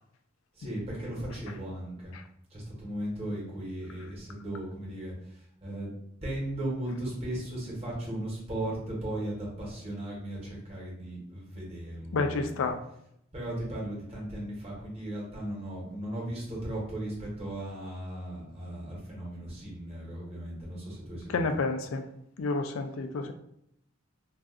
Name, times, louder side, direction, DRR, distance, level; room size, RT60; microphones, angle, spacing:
voice 1, 0.6-2.1 2.5-5.1 5.6-5.9 6.2-12.6 13.3-21.4, right 1 dB, 30° right, -4 dB, 1.1 m, -36 dB
voice 2, 12.1-12.8 21.3-22.0 22.4-23.3, left 3 dB, 90° left, 7 dB, 0.4 m, -29 dB
2.5 x 2.3 x 3.6 m, 0.75 s
head